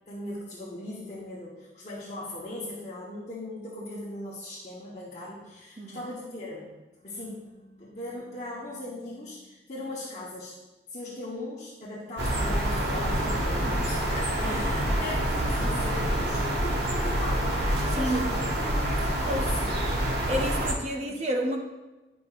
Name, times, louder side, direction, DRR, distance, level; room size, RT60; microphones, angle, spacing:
voice 1, 0.1-6.7 7.0-10.6 10.9-18.3 18.6-19.7 21.0-21.2, left 1 dB, 40° left, -7 dB, 1.1 m, -39 dB
sound 1, 12.2-20.7, right 1 dB, 65° right, 1.2 m, -27 dB
voice 2, 20.3-21.6, equal, 35° right, 2 dB, 0.8 m, -30 dB
10.5 x 5.1 x 2.4 m, 1.1 s
head